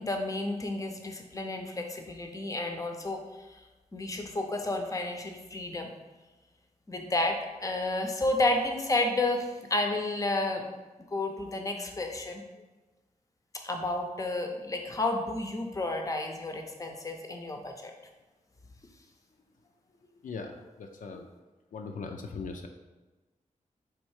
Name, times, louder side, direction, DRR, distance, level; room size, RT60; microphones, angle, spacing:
voice 1, 0.0-3.2 3.9-5.9 6.9-10.6 11.1-12.4 13.6-17.9, left 2 dB, 25° left, 3 dB, 0.6 m, -31 dB
voice 2, 20.2-21.3 21.7-22.7, left 4 dB, 75° left, 3 dB, 0.4 m, -39 dB
3.6 x 3.2 x 4.6 m, 1.2 s
wide cardioid pair, 100°, 14 cm